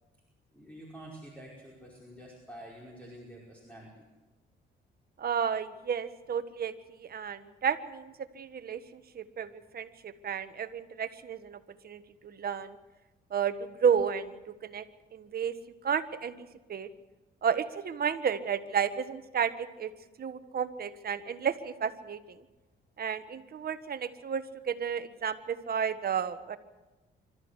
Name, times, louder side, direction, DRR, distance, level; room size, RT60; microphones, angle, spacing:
voice 1, 0.5-3.9, right 1 dB, 5° left, -3 dB, 5.2 m, -48 dB
voice 2, 5.2-6.7 7.0-11.6 11.8-12.8 13.3-14.8 15.1-15.5 15.8-16.3 16.7-16.9 17.4-19.9 20.2-22.2 23.0-26.6, right 7 dB, 50° right, 11 dB, 1.5 m, -32 dB
26.0 x 13.5 x 8.2 m, 1.1 s
cardioid pair, 90°, 20 cm